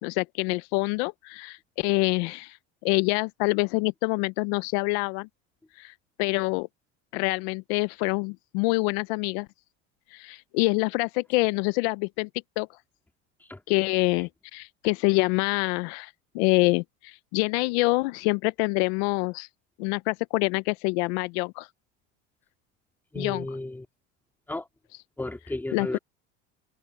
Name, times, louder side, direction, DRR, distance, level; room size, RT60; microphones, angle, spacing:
voice 1, 0.0-2.6 2.8-5.3 5.8-6.7 7.1-9.5 10.1-12.3 12.6-12.7 13.7-19.5 19.8-21.7 23.2-23.4 25.7-26.0, left 26 dB, 75° left, 0.6 m, -26 dB
voice 2, 23.1-23.9 24.5-24.7 25.2-26.0, left 2 dB, 5° left, 2.3 m, -33 dB
cardioid pair, 145°, 32 cm